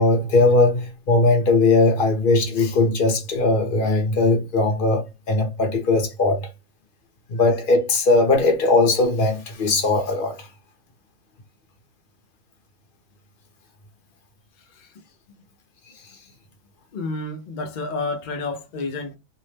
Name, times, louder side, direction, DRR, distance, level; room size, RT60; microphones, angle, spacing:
voice 1, 0.0-6.5 7.3-10.5, left 2 dB, 45° left, 0.8 m, -19 dB
voice 2, 16.9-19.2, left 3 dB, 75° left, 0.4 m, -30 dB
2.7 x 2.0 x 3.2 m
omnidirectional pair, 1.5 m